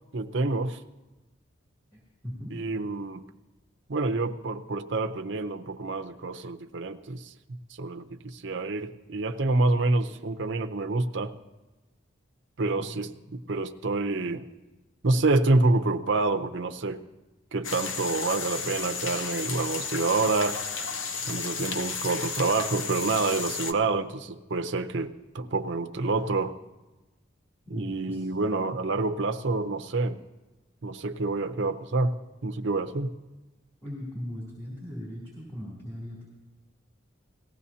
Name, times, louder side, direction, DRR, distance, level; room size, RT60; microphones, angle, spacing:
voice 1, 0.1-0.8 2.5-3.2 3.9-7.3 7.8-11.3 12.6-14.4 15.0-17.0 17.5-20.6 21.3-26.5 27.7-30.2 30.8-32.1 32.4-33.1, right 3 dB, 65° right, 7 dB, 0.7 m, -27 dB
voice 2, 1.9-2.6 12.8-13.0 27.7-28.2 33.8-36.3, equal, 15° left, -5 dB, 2.9 m, -39 dB
sound 1, 17.6-23.7, left 5 dB, 80° left, 0.8 m, -33 dB
19.0 x 15.0 x 2.8 m, 1.1 s
head